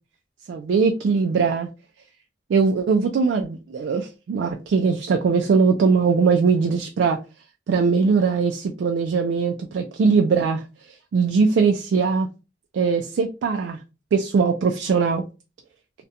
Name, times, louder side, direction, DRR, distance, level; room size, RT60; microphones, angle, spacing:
voice 1, 0.5-1.7 2.5-7.2 7.7-12.3 12.7-13.8 14.1-15.2, right 5 dB, 80° right, 0.3 m, -21 dB
2.4 x 2.1 x 2.7 m
head